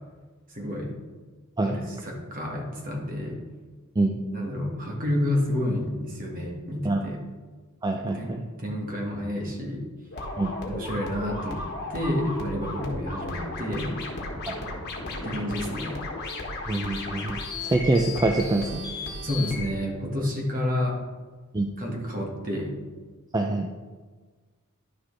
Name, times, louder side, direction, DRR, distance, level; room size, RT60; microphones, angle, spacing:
voice 1, 0.5-0.9 1.6-3.4 4.3-7.2 8.0-9.8 10.6-11.6 11.9-14.0 15.2-16.1 19.2-21.0 21.8-22.8, left 1 dB, 40° right, 0 dB, 1.6 m, -30 dB
voice 2, 7.8-8.4 10.4-10.5 14.5-14.6 16.7-18.8 21.5-21.7 23.3-23.7, right 2 dB, 20° right, 3 dB, 0.4 m, -25 dB
sound 1, 10.1-19.7, left 2 dB, 50° left, 1.5 m, -34 dB
11.0 x 6.2 x 3.3 m, 1.4 s
head